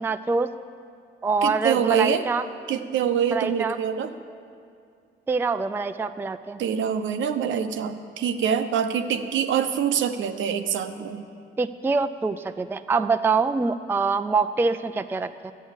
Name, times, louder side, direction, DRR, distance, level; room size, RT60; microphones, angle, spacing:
voice 1, 0.0-0.5 1.2-2.4 3.3-3.8 5.3-6.6 11.6-15.5, right 4 dB, 10° right, 9 dB, 0.3 m, -25 dB
voice 2, 1.4-2.2 2.7-4.1 6.6-11.2, right 8 dB, 75° right, 9 dB, 0.8 m, -25 dB
12.5 x 8.3 x 7.3 m, 2.3 s
cardioid pair, 90°, 20 cm